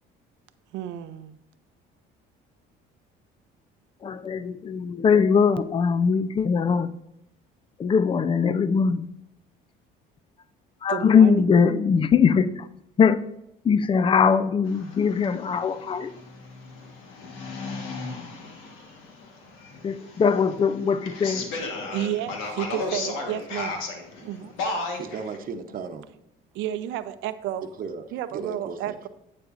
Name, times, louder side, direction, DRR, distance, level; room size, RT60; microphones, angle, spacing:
voice 1, 0.7-1.4 10.9-11.4 21.9-23.8 24.2-24.5 26.5-27.7 28.1-29.1, right 11 dB, 75° right, 12 dB, 0.6 m, -31 dB
voice 2, 4.0-7.0 7.8-9.1 10.8-12.7 13.0-13.2 13.6-16.1 19.8-21.5, left 6 dB, 25° left, 14 dB, 0.5 m, -21 dB
sound 1, 14.7-25.4, left 3 dB, 85° left, 1.5 m, -35 dB
voice 3, 24.9-26.0 27.8-28.0 28.3-28.9, right 5 dB, 45° right, 7 dB, 0.9 m, -35 dB
9.7 x 8.6 x 2.6 m, 0.83 s
cardioid pair, 95°, 19 cm